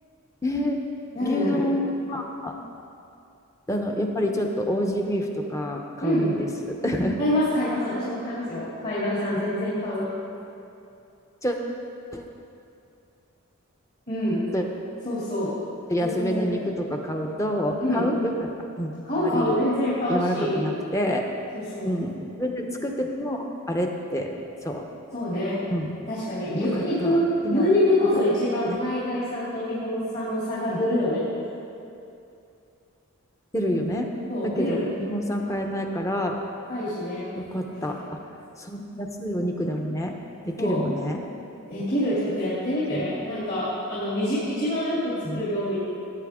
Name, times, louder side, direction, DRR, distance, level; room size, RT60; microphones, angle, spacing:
voice 1, 0.4-0.8 1.2-1.8 2.1-2.6 3.7-7.2 11.4-11.6 12.1-12.2 14.5-14.6 15.9-18.5 18.8-18.9 19.2-19.5 20.1-21.2 21.8-22.1 22.4-24.3 24.6-24.8 25.7-25.9 26.7-27.2 27.4-27.7 28.7-28.8 33.5-34.1 34.4-36.4 37.4-38.0 38.6-40.1 40.4-41.3 42.9-43.1 45.2-45.4, equal, 15° left, 2 dB, 0.8 m, -27 dB
voice 2, 1.1-1.6 6.0-6.3 7.2-10.0 14.1-14.4 15.0-15.5 16.0-16.6 17.8-18.1 19.0-20.6 21.5-21.9 25.1-25.6 26.1-27.2 27.5-31.2 34.3-34.9 36.7-37.3 40.6-40.8 41.7-45.8, left 1 dB, 45° left, -11 dB, 2.9 m, -26 dB
16.5 x 9.0 x 3.7 m, 2.6 s
head